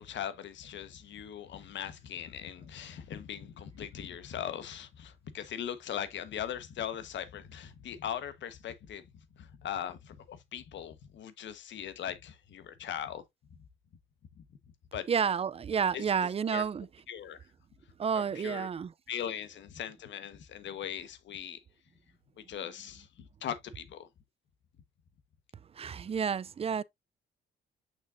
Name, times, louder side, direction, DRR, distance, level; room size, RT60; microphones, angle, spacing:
voice 1, 0.0-9.1 9.4-13.2 14.9-15.1 15.9-16.0 16.5-16.6 17.1-17.4 18.1-18.7 19.1-21.6 22.4-24.1, left 9 dB, 70° left, 1.2 m, -40 dB
voice 2, 15.1-16.9 18.0-18.9 25.7-26.8, right 7 dB, 30° right, 0.5 m, -30 dB
6.4 x 6.2 x 2.6 m
cardioid pair, 90°, 20 cm